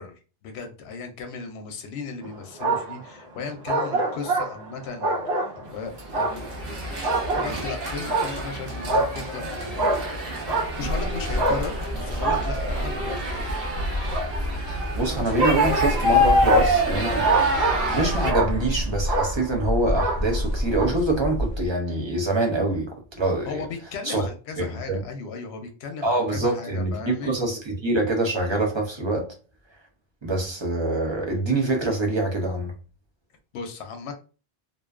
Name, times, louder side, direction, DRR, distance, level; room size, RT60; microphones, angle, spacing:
voice 1, 0.0-5.5 5.7-6.4 7.3-10.4 10.8-13.2 23.5-27.3 33.5-34.1, left 5 dB, 85° left, 0.8 m, -36 dB
sound 1, 2.2-3.1 3.7-5.8 6.1-7.7 8.1-8.6 8.9-11.0 11.4-13.2 14.1-14.3 15.4-18.0 18.3-18.8 19.1-19.6 19.9-20.5 20.8-20.9, right 2 dB, 85° right, 1.1 m, -26 dB
sound 2, 6.0-18.3, equal, 65° right, 0.9 m, -27 dB
sound 3, 10.7-21.7, equal, 45° left, 0.7 m, -29 dB
voice 2, 14.9-17.3 17.9-23.6 24.0-24.2 24.6-25.0 26.0-29.3 30.2-32.7, right 2 dB, 35° right, 0.5 m, -25 dB
2.5 x 2.2 x 2.3 m
omnidirectional pair, 1.1 m